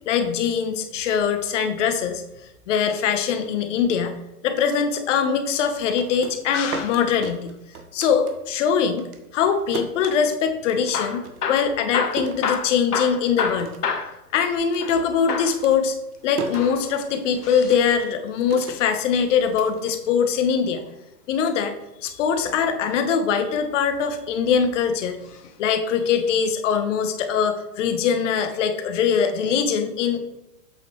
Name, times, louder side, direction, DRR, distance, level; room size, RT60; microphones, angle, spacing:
voice 1, 0.1-2.2 2.7-4.1 4.4-7.5 7.9-9.1 9.3-13.7 14.3-16.0 16.2-20.8 21.3-21.7 22.0-25.2 25.6-30.2, left 7 dB, 50° left, 8 dB, 1.2 m, -22 dB
sound 1, 5.7-8.7 9.0-13.1 13.4-14.1 14.3-20.6, right 4 dB, 70° right, 1.3 m, -38 dB
Hammer / Drill, 10.8-15.0 15.3-15.6 16.4-17.8 19.6-20.8 22.5-23.0 23.7-24.5 25.2-25.5 25.8-25.9 26.5-26.6, left 6 dB, 70° left, 1.4 m, -30 dB
8.0 x 6.8 x 3.2 m, 0.88 s
hypercardioid pair, 120°, 47 cm